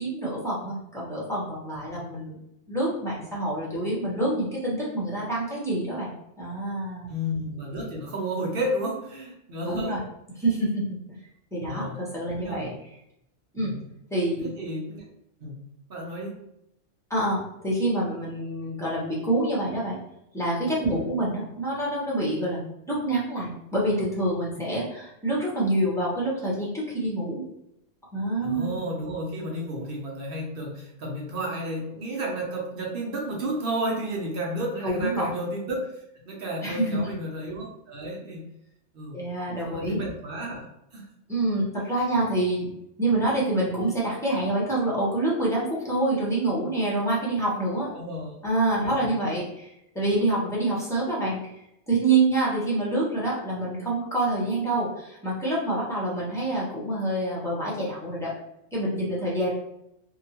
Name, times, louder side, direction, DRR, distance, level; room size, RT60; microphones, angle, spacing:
voice 1, 0.0-2.4 2.7-7.1 9.6-10.0 10.4-11.2 11.5-12.7 13.5-13.7 14.1-14.5 17.1-20.0 20.3-22.6 22.9-27.4 28.1-28.8 34.8-35.3 36.6-37.1 39.1-40.0 41.3-42.7 43.0-47.9 48.4-51.4 51.9-58.3 58.7-59.5, right 2 dB, 5° left, -6 dB, 0.6 m, -27 dB
voice 2, 7.1-10.0 11.6-12.0 12.3-12.8 13.6-13.8 14.4-15.0 15.4-16.4 20.9-21.0 28.4-38.5 38.9-39.2 39.7-41.1 47.9-48.4 48.9-49.1, right 1 dB, 55° right, -1 dB, 0.7 m, -32 dB
2.8 x 2.1 x 2.8 m, 0.82 s
omnidirectional pair, 1.3 m